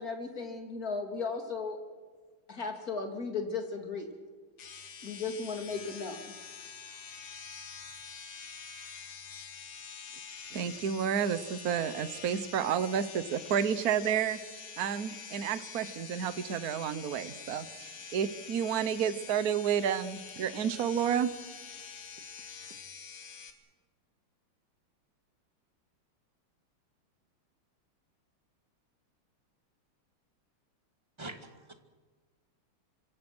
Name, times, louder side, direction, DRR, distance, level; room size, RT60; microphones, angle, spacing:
voice 1, 0.0-1.8 2.5-4.1 5.0-6.3, left 4 dB, 40° left, 3 dB, 3.6 m, -36 dB
sound 1, 4.6-23.5, left 6 dB, 85° left, 2.9 m, -46 dB
voice 2, 10.5-14.4 14.8-21.3, right 8 dB, 50° right, 13 dB, 1.3 m, -30 dB
voice 3, 31.2-31.7, right 2 dB, 15° right, 6 dB, 1.9 m, -44 dB
26.0 x 26.0 x 6.3 m, 1.5 s
omnidirectional pair, 2.4 m